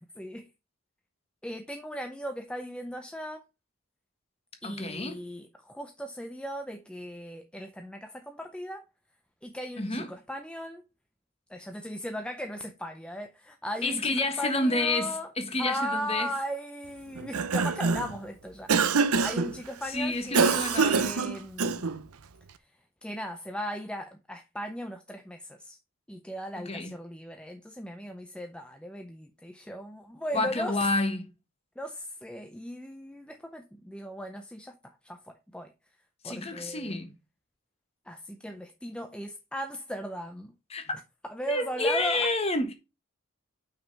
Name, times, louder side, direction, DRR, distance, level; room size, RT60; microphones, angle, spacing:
voice 1, 0.2-0.5 1.4-3.4 4.6-8.9 9.4-10.8 11.5-15.3 15.6-21.9 23.0-25.8 26.1-30.9 31.8-35.7 36.2-37.0 38.0-40.5 41.2-42.3, equal, 5° left, 0.5 m, -37 dB
voice 2, 4.6-5.2 9.8-10.1 13.8-16.3 19.9-21.1 26.7-26.9 30.3-31.2 36.2-37.1 40.7-41.0 41.5-42.7, left 2 dB, 25° left, 1.3 m, -29 dB
Cough, 17.2-18.2 18.7-19.5 20.3-22.0, right 5 dB, 90° right, 0.7 m, -25 dB
5.9 x 5.3 x 5.3 m
head